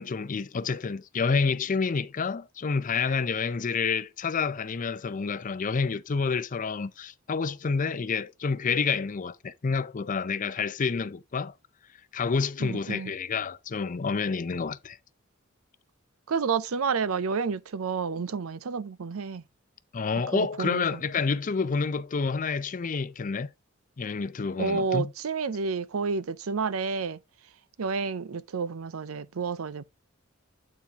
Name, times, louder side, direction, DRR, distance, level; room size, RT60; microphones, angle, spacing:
voice 1, 0.0-11.5 12.1-15.0 19.9-23.5 24.0-25.1, left 5 dB, 40° left, 0.5 m, -28 dB
voice 2, 12.6-13.1 16.3-19.4 20.3-20.8 24.6-27.2 27.8-29.8, right 5 dB, 85° right, 0.6 m, -30 dB
8.6 x 4.4 x 3.5 m
head